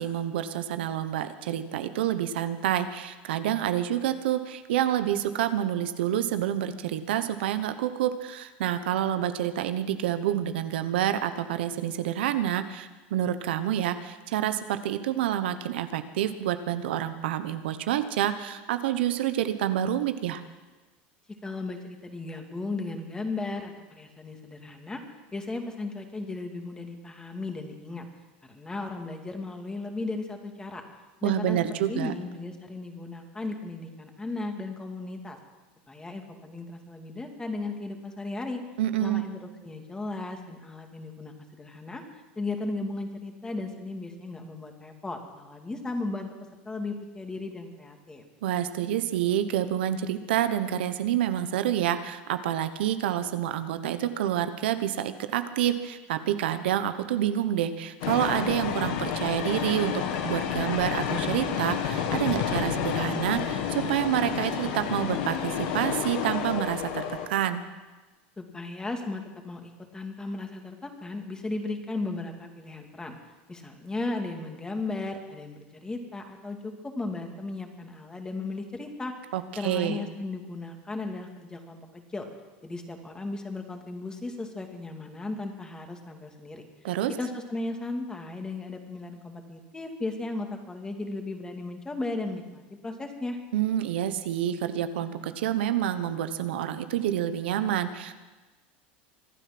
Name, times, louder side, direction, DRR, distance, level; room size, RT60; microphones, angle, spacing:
voice 1, 0.0-20.4 31.2-32.1 38.8-39.2 48.4-67.0 67.3-67.6 79.3-80.0 86.8-87.1 93.5-98.1, right 11 dB, 85° right, 10 dB, 1.0 m, -28 dB
voice 2, 21.4-25.0 25.3-28.0 28.5-30.8 31.2-35.4 35.9-38.6 39.0-42.0 42.4-46.4 46.6-48.2 68.4-73.2 73.5-79.1 79.6-82.3 82.6-86.6 87.2-93.4, left 2 dB, 15° left, 4 dB, 2.4 m, -36 dB
sound 1, 58.0-67.3, left 8 dB, 75° left, 1.9 m, -30 dB
24.5 x 9.2 x 6.0 m, 1.2 s
supercardioid pair, 115°, 6 cm